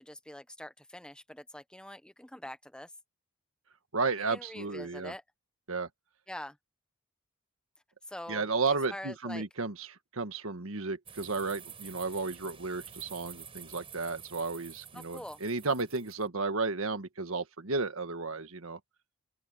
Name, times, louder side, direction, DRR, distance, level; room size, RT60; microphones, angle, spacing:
voice 1, 0.0-2.9 4.3-5.2 6.3-6.6 8.1-9.5 14.9-15.4, left 1 dB, 5° left, 1.0 m, -44 dB
voice 2, 3.9-5.1 5.7-5.9 8.3-18.8, right 4 dB, 75° right, 1.6 m, -33 dB
sound 1, 11.1-16.3, right 7 dB, 25° right, 4.7 m, -49 dB
open air
head